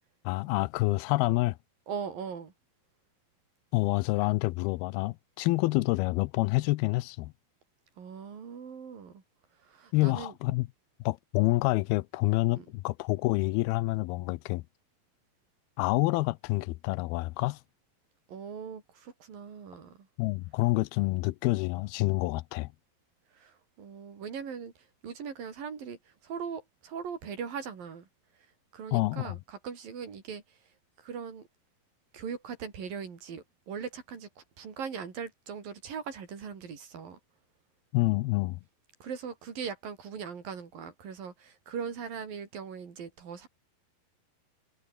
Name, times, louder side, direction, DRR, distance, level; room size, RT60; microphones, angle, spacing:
voice 1, 0.3-1.6 3.7-7.3 9.9-10.7 11.1-14.6 15.8-17.6 20.2-22.7 28.9-29.4 37.9-38.6, left 20 dB, 90° left, 2.6 m, -27 dB
voice 2, 1.9-2.5 8.0-9.2 9.6-10.3 12.6-12.7 18.3-20.1 23.3-24.7 25.0-26.0 26.2-28.1 28.7-30.4 31.0-31.5 32.1-37.2 39.0-43.5, right 6 dB, 65° right, 5.6 m, -40 dB
omnidirectional pair, 4.3 m